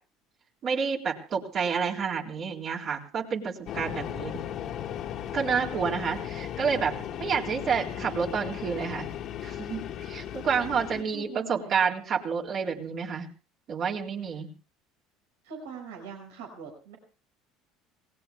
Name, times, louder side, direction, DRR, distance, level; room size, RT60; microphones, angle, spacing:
voice 1, 0.6-4.4 5.3-6.9 7.2-9.1 9.4-13.3 13.7-14.5, right 6 dB, 50° right, -1 dB, 4.1 m, -29 dB
sound 1, 3.7-11.0, left 10 dB, 60° left, 2.7 m, -36 dB
voice 2, 10.6-11.8 15.4-17.0, right 6 dB, 85° right, 2 dB, 5.4 m, -43 dB
28.0 x 18.5 x 2.3 m, 0.35 s
hypercardioid pair, 75°, 0 cm